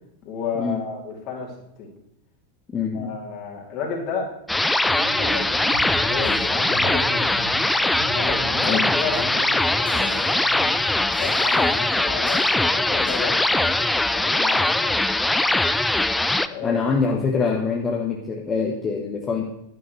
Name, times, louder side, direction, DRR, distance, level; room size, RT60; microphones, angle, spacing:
voice 1, 0.2-1.5 1.8-1.9 2.9-4.3 5.2-5.4 5.8-7.4 8.1-10.7 11.0-13.9 14.1-15.0 16.4-16.8, left 5 dB, 40° left, 0 dB, 3.0 m, -32 dB
voice 2, 2.7-3.2 8.7-8.9 16.6-19.4, left 5 dB, 20° left, 0 dB, 1.3 m, -24 dB
sound 1, 4.5-16.5, left 2 dB, 5° left, 0.4 m, -21 dB
sound 2, 4.9-10.9, right 5 dB, 60° right, 2.5 m, -38 dB
sound 3, 5.7-6.4 6.7-7.1 7.4-7.6 8.0-8.3 8.6-8.7 9.1-9.3 9.9-10.5 11.1-11.8 12.3-12.6 13.1-13.2, equal, 65° left, 3.4 m, -39 dB
11.5 x 11.5 x 3.3 m, 0.81 s
figure-of-eight pair, 90°, 0 cm